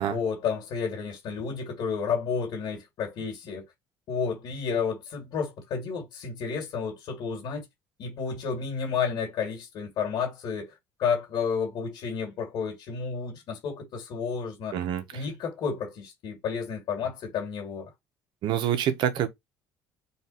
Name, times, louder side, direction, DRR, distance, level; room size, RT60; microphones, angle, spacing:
voice 1, 0.1-3.6 4.1-7.6 8.0-10.7 11.0-14.8 15.1-17.9, left 6 dB, 60° left, 2.1 m, -31 dB
voice 2, 14.7-15.2 18.4-19.3, right 10 dB, 65° right, 1.0 m, -27 dB
4.1 x 2.5 x 4.0 m
cardioid pair, 110°, 9 cm